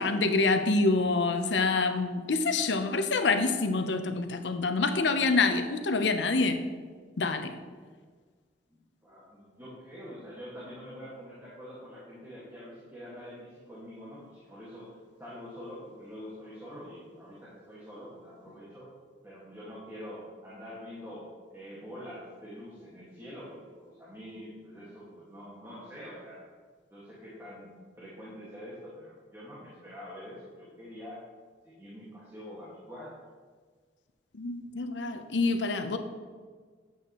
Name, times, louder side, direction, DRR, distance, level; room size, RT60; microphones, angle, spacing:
voice 1, 0.0-6.6 7.2-7.6 34.3-36.0, left 3 dB, 85° left, 8 dB, 0.7 m, -26 dB
voice 2, 8.7-18.9 19.2-26.4 26.9-31.2 31.6-33.1, equal, 15° right, -8 dB, 1.7 m, -45 dB
9.3 x 8.0 x 3.0 m, 1.5 s
head